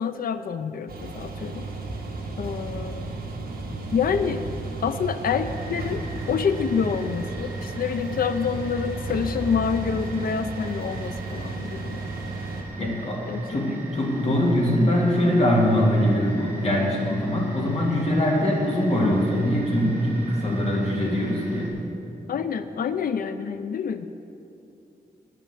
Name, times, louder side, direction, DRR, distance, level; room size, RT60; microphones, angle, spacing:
voice 1, 0.0-1.6 2.4-3.1 3.9-4.4 4.8-12.0 12.8-13.0 13.3-13.8 22.3-24.1, left 6 dB, 65° left, 10 dB, 0.5 m, -27 dB
sound 1, 0.9-12.6, right 2 dB, 70° right, 1.7 m, -33 dB
sound 2, 5.5-21.7, right 2 dB, 10° right, 3.1 m, -41 dB
voice 2, 12.8-13.2 13.5-21.7, equal, 40° left, -2 dB, 2.4 m, -22 dB
9.4 x 9.3 x 9.1 m, 2.7 s
wide cardioid pair, 165°, 16 cm